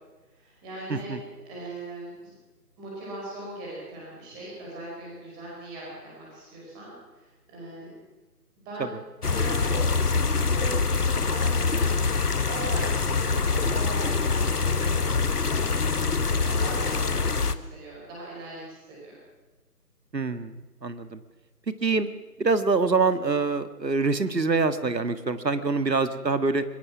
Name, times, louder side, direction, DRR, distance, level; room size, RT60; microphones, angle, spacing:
voice 1, 0.3-2.3 2.8-7.9 8.6-9.9 10.1-15.2 15.4-15.9 16.2-19.2 25.6-25.9, right 1 dB, 10° right, -4 dB, 4.9 m, -40 dB
sound 1, 9.2-17.6, left 4 dB, 65° left, 1.3 m, -25 dB
voice 2, 20.1-20.6 20.8-21.2 21.7-22.1 22.4-26.6, right 4 dB, 80° right, 11 dB, 1.8 m, -25 dB
23.0 x 21.0 x 6.0 m, 1.2 s
figure-of-eight pair, 165°, 49 cm